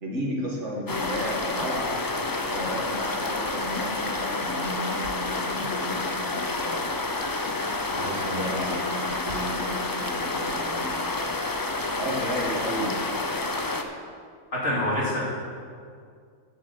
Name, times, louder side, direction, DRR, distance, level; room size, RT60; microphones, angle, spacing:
voice 1, 0.0-6.8 7.9-11.0 11.9-13.0, equal, 60° right, -2 dB, 2.1 m, -33 dB
sound 1, 0.9-13.8, left 2 dB, 30° left, 0.3 m, -29 dB
voice 2, 7.9-8.2 14.5-15.2, left 1 dB, 60° left, -6 dB, 3.2 m, -27 dB
9.9 x 7.3 x 6.8 m, 2.2 s
omnidirectional pair, 1.4 m